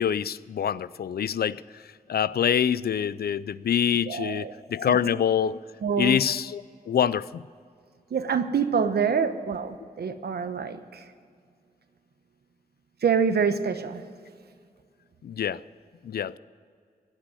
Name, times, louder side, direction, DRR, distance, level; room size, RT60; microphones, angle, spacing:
voice 1, 0.0-1.6 2.1-5.6 6.0-7.4 15.2-15.6 16.0-16.4, left 8 dB, 75° left, 18 dB, 0.4 m, -25 dB
voice 2, 4.1-4.5 4.9-5.0 5.8-6.2 8.1-11.0 13.0-14.0, right 6 dB, 85° right, 10 dB, 0.9 m, -26 dB
16.5 x 6.2 x 9.8 m, 2.1 s
wide cardioid pair, 95°, 16 cm